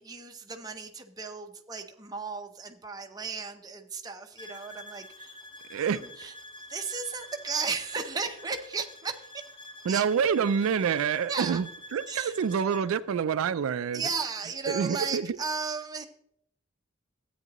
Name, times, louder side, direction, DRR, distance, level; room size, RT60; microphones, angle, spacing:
voice 1, 0.0-5.4 5.8-6.3 6.7-9.3 9.9-10.0 11.3-11.6 12.1-12.3 13.9-16.0, right 5 dB, 20° right, 4 dB, 0.7 m, -35 dB
sound 1, 4.4-12.9, left 1 dB, 25° left, 0.8 m, -47 dB
voice 2, 9.9-14.0 14.7-15.4, right 7 dB, 85° right, 14 dB, 0.4 m, -27 dB
13.5 x 8.8 x 3.0 m, 0.73 s
head